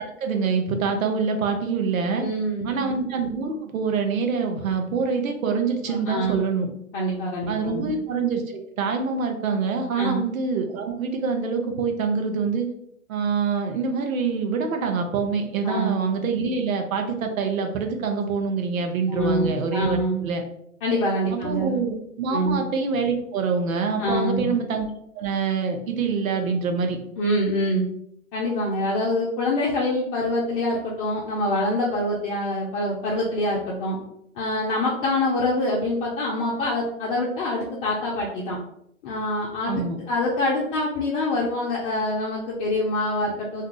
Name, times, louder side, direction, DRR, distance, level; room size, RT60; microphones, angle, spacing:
voice 1, 0.0-2.3 2.6-6.7 7.5-12.7 13.1-20.4 21.3-24.9 25.1-27.0 39.7-40.0, right 5 dB, 75° right, 4 dB, 0.8 m, -25 dB
voice 2, 2.2-2.9 5.9-6.3 6.9-7.9 10.0-10.3 15.6-16.0 19.1-20.3 20.8-21.8 22.3-22.6 24.0-24.5 27.2-27.9 28.3-34.0 34.3-38.6 39.0-43.7, left 1 dB, 40° left, -4 dB, 0.7 m, -25 dB
2.7 x 2.3 x 3.7 m, 0.76 s
hypercardioid pair, 125°, 41 cm